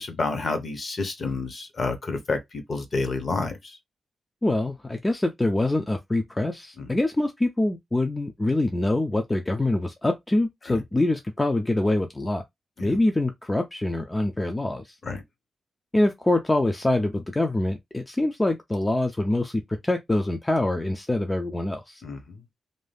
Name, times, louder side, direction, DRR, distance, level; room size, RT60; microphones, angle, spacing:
voice 1, 0.0-3.8 6.8-6.9 10.7-10.8 12.8-12.9 15.0-15.2 22.0-22.4, left 3 dB, 40° left, 0.7 m, -29 dB
voice 2, 4.4-12.4 12.8-15.0 15.9-22.0, left 2 dB, 15° left, 0.3 m, -25 dB
2.6 x 2.2 x 3.3 m
wide cardioid pair, 165°, 0 cm